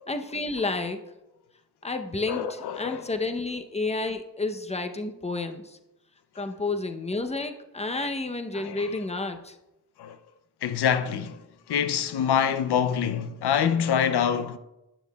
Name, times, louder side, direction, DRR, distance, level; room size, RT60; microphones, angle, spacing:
voice 1, 0.1-1.0 1.8-5.8 6.4-9.6, left 3 dB, 15° left, 0.7 m, -30 dB
voice 2, 2.3-3.1 6.4-6.5 8.5-8.9 10.0-10.2 10.6-11.4 11.7-14.6, left 8 dB, 85° left, 0.6 m, -26 dB
10.0 x 6.9 x 2.3 m
cardioid pair, 55°, 38 cm